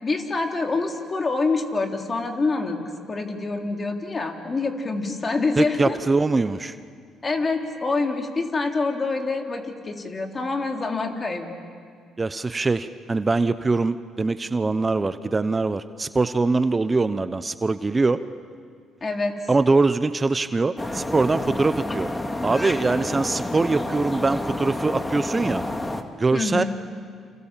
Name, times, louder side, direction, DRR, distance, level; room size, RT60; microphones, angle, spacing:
voice 1, 0.0-6.0 7.2-11.6 19.0-19.4 26.3-26.7, left 3 dB, 35° left, 3 dB, 3.5 m, -26 dB
voice 2, 5.6-6.8 12.2-18.2 19.5-22.1 22.4-25.6 26.2-26.6, right 3 dB, 25° right, 12 dB, 0.9 m, -23 dB
sound 1, 20.8-26.0, left 1 dB, 15° left, 2.2 m, -29 dB
28.5 x 28.0 x 7.5 m, 2.1 s
supercardioid pair, 65°, 0 cm